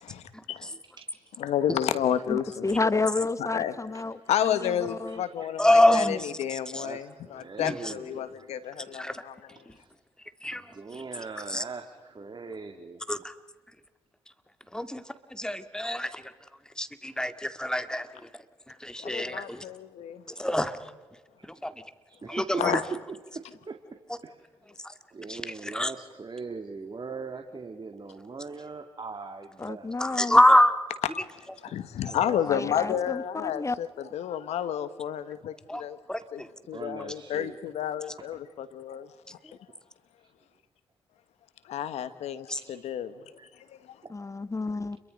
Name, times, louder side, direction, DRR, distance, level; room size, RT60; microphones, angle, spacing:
voice 1, 0.0-0.7 1.4-2.6 2.9-3.0 3.4-3.8 4.3-9.6 19.0-20.2 22.6-22.8 31.1-31.2 31.6-36.0 36.3-39.1 39.4-39.6 41.6-44.0, left 10 dB, 80° left, 1.3 m, -31 dB
voice 2, 2.3-5.2 29.6-30.4 32.3-33.8 44.1-45.0, left 3 dB, 30° left, 1.3 m, -31 dB
voice 3, 5.1-5.5 6.7-8.5 9.7-9.9 10.5-13.0 21.4-21.6 22.1-22.6 23.3-23.8 24.2-24.5 25.1-29.9 32.0-33.1 36.7-37.6 42.7-42.8 43.4-43.5 44.0-44.1, right 4 dB, 40° right, 2.3 m, -41 dB
voice 4, 5.6-6.3 7.6-7.8 9.0-9.2 10.4-10.6 11.5-11.6 13.1-13.3 14.7-15.0 15.3-16.2 16.8-18.1 18.8-19.6 20.4-20.8 21.6-21.7 22.3-22.8 25.3-25.9 30.0-30.7 35.7-35.8 36.1-36.5 42.5-42.6, left 1 dB, 5° left, 2.1 m, -24 dB
30.0 x 23.0 x 5.3 m
supercardioid pair, 45°, 11 cm